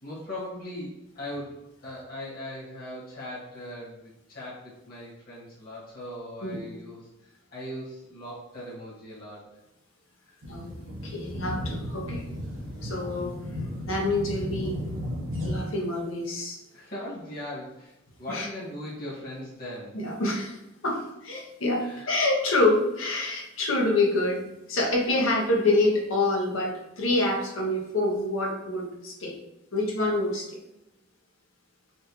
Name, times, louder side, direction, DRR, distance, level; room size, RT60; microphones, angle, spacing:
voice 1, 0.0-7.1 7.5-9.5 10.3-10.4 12.4-12.7 16.7-20.0 21.8-22.2, left 1 dB, 50° left, -7 dB, 1.4 m, -39 dB
sound 1, 10.4-15.6, equal, 75° right, 0.8 m, -34 dB
voice 2, 11.0-12.2 12.8-13.4 13.9-14.8 15.4-16.6 18.3-18.5 19.9-20.6 20.8-29.3 29.7-30.6, left 2 dB, 85° left, 0 dB, 0.8 m, -26 dB
4.2 x 2.3 x 2.9 m, 0.92 s
head